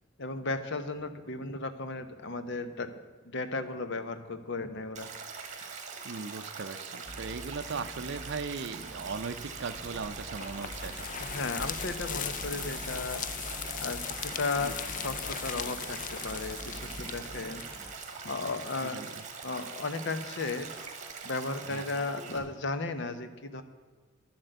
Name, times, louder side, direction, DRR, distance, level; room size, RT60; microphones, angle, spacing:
voice 1, 0.2-3.0 3.2-5.1 11.2-13.3 13.8-17.6 18.2-19.0 19.4-20.7 21.2-23.6, left 3 dB, 60° left, 10 dB, 0.9 m, -35 dB
Stream, 4.9-22.4, right 5 dB, 35° right, 1.7 m, -43 dB
voice 2, 6.0-10.9 14.6-14.7 18.8-19.2 21.7-21.8, right 4 dB, 55° right, 8 dB, 0.5 m, -38 dB
sound 1, 7.0-17.9, equal, 5° right, 0.8 m, -46 dB
sound 2, 9.7-18.5, left 8 dB, 40° left, 0.5 m, -39 dB
11.0 x 7.7 x 7.9 m, 1.5 s
head